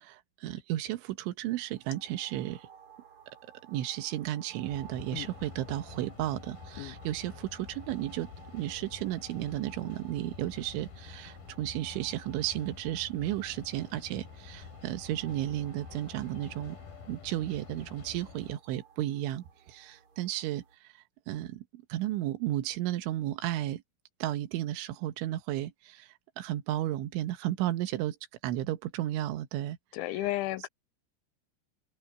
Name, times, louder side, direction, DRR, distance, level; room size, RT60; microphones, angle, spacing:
voice 1, 0.0-2.7 3.7-16.8 17.1-23.8 24.2-28.2 28.4-29.8, right 14 dB, 80° right, 3.6 m, -34 dB
sound 1, 1.5-20.8, right 8 dB, 40° right, 6.4 m, -57 dB
sound 2, 4.6-18.6, left 6 dB, 55° left, 4.5 m, -48 dB
voice 2, 29.9-30.7, left 16 dB, 85° left, 3.2 m, -33 dB
open air
omnidirectional pair, 5.4 m